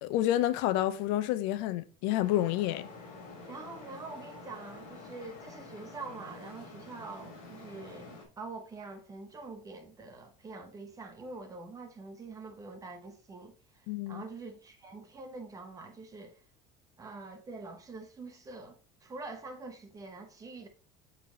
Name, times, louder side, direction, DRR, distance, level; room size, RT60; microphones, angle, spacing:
voice 1, 0.0-2.9 13.9-14.2, left 13 dB, 80° left, 0.7 m, -29 dB
Traffic noise roadway noise, 2.2-8.2, left 3 dB, 40° left, 2.4 m, -48 dB
voice 2, 3.5-16.4 17.0-20.7, right 3 dB, 15° right, 0.9 m, -45 dB
6.7 x 4.2 x 3.9 m
cardioid pair, 175°, 20 cm